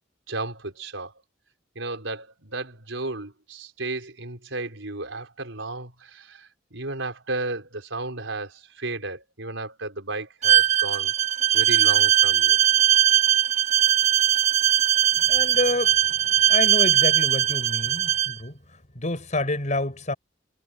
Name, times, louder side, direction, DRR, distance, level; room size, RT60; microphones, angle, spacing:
voice 1, 0.3-1.1 1.7-11.1 11.5-12.6, right 2 dB, 80° right, 4.8 m, -33 dB
Bowed string instrument, 10.4-18.3, right 11 dB, 40° right, 1.0 m, -20 dB
voice 2, 15.2-20.1, left 2 dB, 40° left, 4.8 m, -28 dB
head